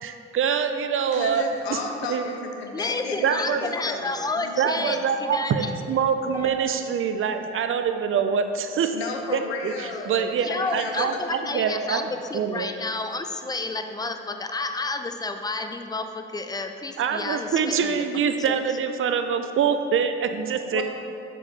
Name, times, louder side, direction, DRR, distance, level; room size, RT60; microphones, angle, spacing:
voice 1, 0.0-1.8 2.1-2.3 3.2-3.6 4.6-8.9 9.3-12.1 12.3-12.7 17.0-20.8, right 7 dB, 45° right, 8 dB, 0.5 m, -25 dB
voice 2, 1.1-4.1 4.4-4.9 8.9-11.2 20.7-20.8, left 4 dB, 90° left, 3 dB, 0.5 m, -33 dB
voice 3, 2.7-5.7 6.4-6.5 10.4-18.0 18.5-18.6, left 3 dB, 15° left, 7 dB, 0.4 m, -31 dB
sound 1, 6.3-10.5, right 5 dB, 10° right, 0.9 m, -44 dB
6.9 x 4.6 x 3.2 m, 2.6 s
hypercardioid pair, 40°, 31 cm